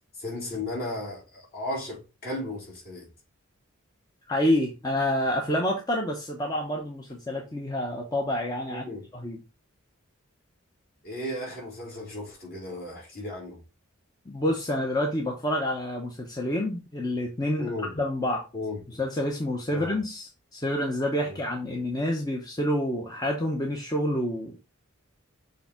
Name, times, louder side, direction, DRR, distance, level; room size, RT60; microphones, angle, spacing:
voice 1, 0.2-3.1 8.7-9.0 11.0-13.6 17.6-17.9 18.5-18.8 19.7-20.0 21.2-21.4, left 1 dB, 45° left, 3.9 m, -35 dB
voice 2, 4.3-8.8 9.1-9.4 14.3-18.5 18.9-24.6, left 1 dB, 20° left, 0.8 m, -28 dB
7.0 x 3.5 x 4.3 m
head